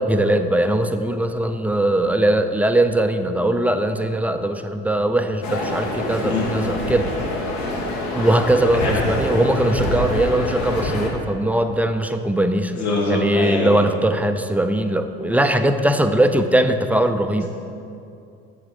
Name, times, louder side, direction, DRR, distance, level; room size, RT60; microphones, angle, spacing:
voice 1, 0.0-7.1 8.1-12.8 13.1-17.5, right 1 dB, 5° right, 7 dB, 0.5 m, -20 dB
sound 1, 5.4-11.1, left 1 dB, 65° left, 1.7 m, -26 dB
voice 2, 8.7-9.0 12.8-13.8, left 2 dB, 90° left, -5 dB, 2.4 m, -23 dB
8.0 x 7.2 x 5.1 m, 2.6 s
hypercardioid pair, 80°, 31 cm